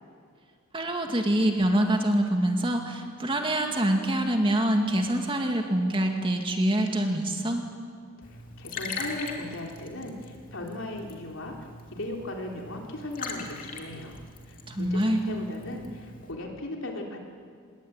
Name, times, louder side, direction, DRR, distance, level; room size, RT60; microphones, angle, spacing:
voice 1, 0.7-7.6 14.7-15.2, right 1 dB, 25° right, 3 dB, 2.3 m, -25 dB
voice 2, 8.2-11.6 11.9-14.2 14.5-17.2, left 1 dB, 60° left, 1 dB, 3.9 m, -37 dB
Liquid, 8.2-16.3, left 4 dB, 40° left, 3.0 m, -41 dB
27.5 x 21.5 x 9.0 m, 2.1 s
head